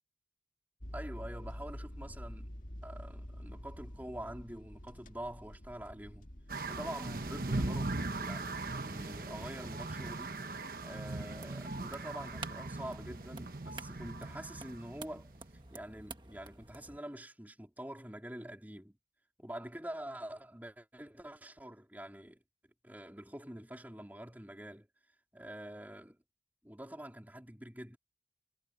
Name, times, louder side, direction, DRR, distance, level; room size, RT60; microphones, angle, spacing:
sound 1, 0.8-8.3, equal, 45° left, 2.1 m, -48 dB
voice 1, 0.9-2.6 2.8-6.3 6.7-10.4 10.8-15.3 15.7-19.0 19.4-22.4 22.8-24.9 25.3-26.2 26.6-28.0, right 1 dB, 10° right, 3.7 m, -46 dB
sound 2, 6.5-15.6, right 2 dB, 55° right, 1.2 m, -39 dB
sound 3, 11.3-17.0, right 4 dB, 25° right, 1.6 m, -51 dB
head